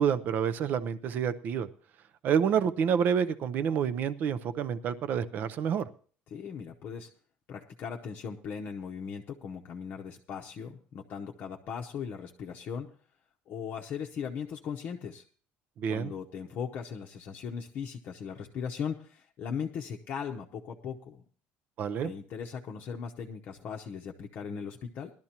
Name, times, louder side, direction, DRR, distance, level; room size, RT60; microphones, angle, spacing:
voice 1, 0.0-1.7 2.2-5.9 15.8-16.1 21.8-22.1, right 7 dB, 40° right, 13 dB, 0.6 m, -28 dB
voice 2, 6.3-7.1 7.5-12.9 13.5-15.2 15.9-21.2 22.0-25.1, left 7 dB, 40° left, 1 dB, 0.8 m, -38 dB
19.0 x 12.0 x 2.9 m, 0.43 s
cardioid pair, 165°, 5 cm